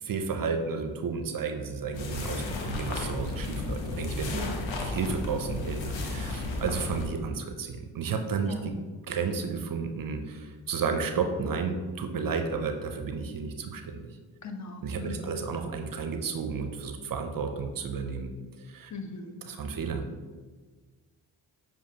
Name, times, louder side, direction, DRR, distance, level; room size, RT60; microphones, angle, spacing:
voice 1, 0.0-4.5 4.8-8.7 9.1-14.1 14.8-18.3 18.7-18.9 19.4-20.0, right 5 dB, 45° right, 6 dB, 0.5 m, -32 dB
sound 1, 1.9-7.1, left 2 dB, 70° left, 0.8 m, -33 dB
voice 2, 4.3-4.6 8.4-8.6 14.4-15.4 18.9-19.4, left 3 dB, 35° left, 4 dB, 0.7 m, -38 dB
6.9 x 2.5 x 2.8 m, 1.4 s
supercardioid pair, 40°, 48 cm